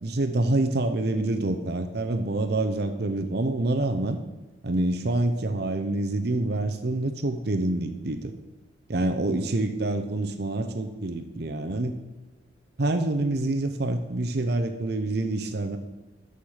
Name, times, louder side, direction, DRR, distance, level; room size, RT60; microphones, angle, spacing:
voice 1, 0.0-4.2 4.6-8.3 8.9-12.0 12.8-15.8, right 2 dB, 55° right, 6 dB, 0.7 m, -26 dB
6.7 x 6.6 x 7.8 m, 1.1 s
head